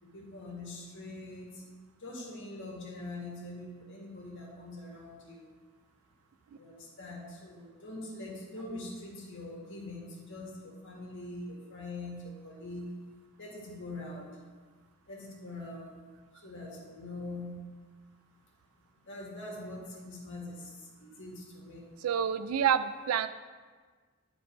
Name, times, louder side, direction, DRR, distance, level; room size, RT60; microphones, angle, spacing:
voice 1, 0.0-1.6 2.0-5.4 6.6-12.9 13.4-14.3 15.1-15.9 16.4-17.6 19.1-20.7 21.0-21.8, left 2 dB, 60° left, -3 dB, 2.0 m, -43 dB
voice 2, 22.0-23.3, right 8 dB, 80° right, 13 dB, 0.4 m, -28 dB
11.0 x 4.7 x 3.9 m, 1.5 s
head